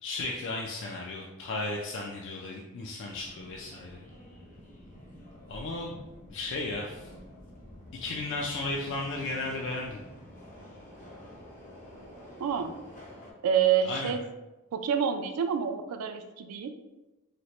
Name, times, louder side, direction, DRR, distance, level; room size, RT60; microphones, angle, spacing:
voice 1, 0.0-4.1 5.5-7.1 7.9-10.0 13.8-14.1, left 2 dB, 55° left, -1 dB, 0.3 m, -35 dB
Subway metro underground, 3.1-13.3, equal, 40° left, 0.8 m, -49 dB
voice 2, 12.4-12.8 13.4-14.2 14.7-16.7, right 8 dB, 75° right, 8 dB, 0.3 m, -27 dB
4.1 x 2.1 x 3.0 m, 1.1 s
head